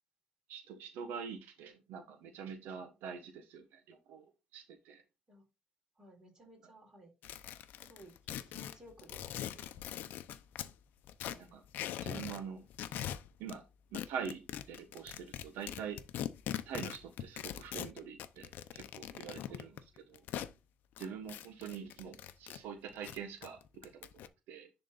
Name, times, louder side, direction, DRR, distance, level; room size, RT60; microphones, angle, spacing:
voice 1, 0.5-5.0 11.4-11.6 12.0-12.6 13.4-13.6 13.9-16.0 16.6-20.3 21.0-24.7, right 7 dB, 85° right, 4 dB, 1.4 m, -45 dB
voice 2, 6.0-7.1 7.8-9.9 11.3-11.6 19.5-19.8 21.0-21.2, right 1 dB, 20° right, 0 dB, 3.7 m, -58 dB
sound 1, 7.2-10.7 11.1-12.4 12.7-13.6 13.9-20.5 21.0-22.6 22.9-24.3, left 11 dB, 70° left, 0.7 m, -41 dB
10.5 x 3.8 x 3.9 m, 0.26 s
cardioid pair, 150°, 3 cm